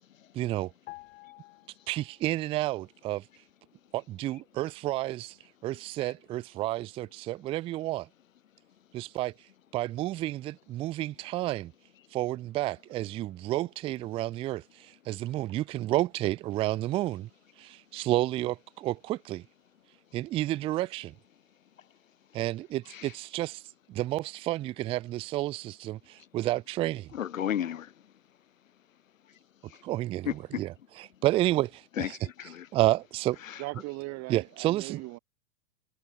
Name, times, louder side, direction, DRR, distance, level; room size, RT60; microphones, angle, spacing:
voice 1, 0.3-0.7 1.9-3.2 3.9-5.4 5.6-8.1 8.9-9.3 9.7-11.7 12.1-17.3 17.6-19.5 20.1-21.1 22.3-23.6 23.9-27.1 29.8-30.7 31.2-32.2 32.7-33.4 34.3-35.0, right 16 dB, 15° right, 0.3 m, -30 dB
sound 1, 0.9-2.5 2.8-3.0, left 20 dB, 55° left, 3.8 m, -50 dB
voice 2, 27.1-28.1 29.2-29.8 30.3-30.6 32.0-32.7 33.4-33.6, left 10 dB, 80° left, 1.8 m, -35 dB
voice 3, 33.6-35.2, right 23 dB, 45° right, 3.5 m, -39 dB
hypercardioid pair, 105°, 39 cm